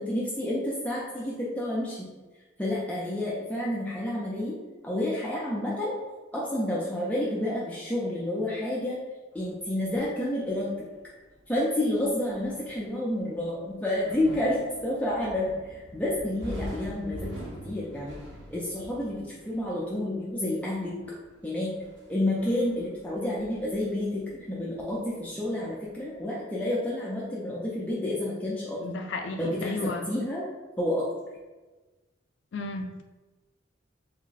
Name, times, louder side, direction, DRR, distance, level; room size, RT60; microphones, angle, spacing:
voice 1, 0.0-2.1 2.6-4.6 4.8-5.9 6.3-9.0 9.3-10.7 11.5-17.3 17.6-18.2 18.5-21.0 21.4-21.7 22.1-28.8 29.4-30.4 30.8-31.1, left 1 dB, 10° left, -7 dB, 0.5 m, -29 dB
sound 1, 9.3-25.2 25.5-26.1, equal, 75° right, 1.0 m, -45 dB
voice 2, 28.8-30.1 32.5-33.0, left 3 dB, 65° left, 5 dB, 0.4 m, -34 dB
3.4 x 2.2 x 3.9 m, 1.2 s
head